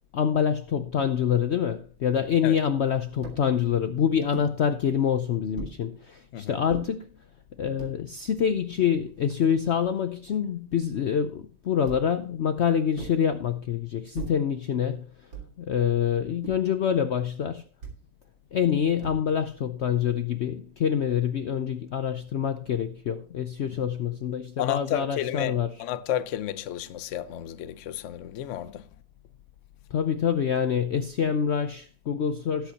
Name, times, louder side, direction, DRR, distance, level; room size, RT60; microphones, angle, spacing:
voice 1, 0.1-7.1 7.6-15.1 15.6-17.6 18.5-25.7 29.9-32.7, left 8 dB, 85° left, 0.5 m, -26 dB
sound 1, 3.2-3.5 4.3-4.5 5.5-5.8 6.7-6.9 7.6-8.0 8.7-8.8 9.0-10.0 11.8-12.2 12.9-13.3 14.1-14.5 15.3-15.7 16.4-16.8 17.8-18.1 19.0-19.5, right 5 dB, 85° right, 2.8 m, -40 dB
voice 2, 6.3-6.6 23.7-23.8 24.6-28.9, left 11 dB, 60° left, 0.8 m, -32 dB
18.5 x 8.1 x 2.8 m
omnidirectional pair, 1.9 m